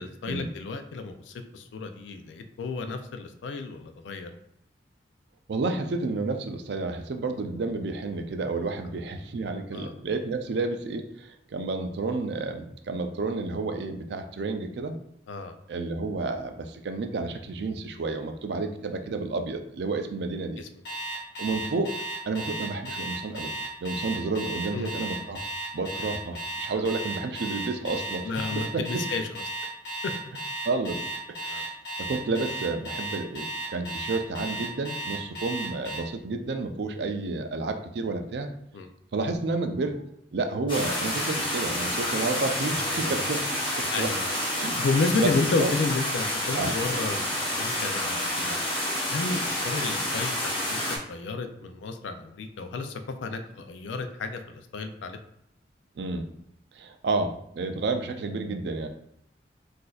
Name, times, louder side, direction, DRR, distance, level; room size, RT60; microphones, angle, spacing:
voice 1, 0.0-4.3 9.7-9.9 15.3-15.6 20.6-20.7 24.7-24.9 26.8-26.9 27.9-29.4 30.0-30.1 31.5-31.6 38.7-38.9 42.9-43.2 43.9-48.6 49.1-55.2, left 3 dB, 90° left, 7 dB, 0.4 m, -32 dB
voice 2, 5.5-14.9 15.7-20.6 21.4-21.9 22.3-23.5 23.8-25.4 25.7-29.0 30.6-31.0 31.4-38.6 39.1-40.0 40.3-44.1 44.5-44.8 45.2-45.3 45.6-45.7 46.5-46.7 56.0-56.3 56.7-58.9, right 3 dB, 70° right, 6 dB, 0.4 m, -30 dB
Alarm, 20.9-36.0, right 1 dB, 65° left, 0.9 m, -34 dB
sound 1, 40.7-51.0, left 1 dB, 25° left, 0.7 m, -29 dB
4.0 x 2.5 x 2.3 m, 0.73 s
head